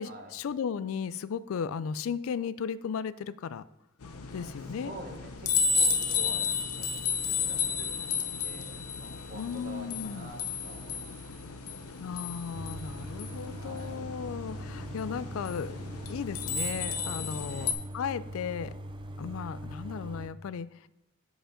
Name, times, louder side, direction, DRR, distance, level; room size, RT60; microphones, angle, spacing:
voice 1, 0.0-3.6 4.3-4.9 9.3-10.3 12.0-15.8 16.1-18.7 19.2-20.9, left 6 dB, 65° left, 17 dB, 0.3 m, -35 dB
sound 1, 4.0-17.7, left 5 dB, 80° left, 0.7 m, -33 dB
voice 2, 4.4-11.4 13.5-13.9 16.9-17.8, equal, 40° right, 2 dB, 1.1 m, -48 dB
sound 2, 12.5-20.3, right 1 dB, 20° right, 0.4 m, -41 dB
7.5 x 5.0 x 5.0 m, 0.89 s
head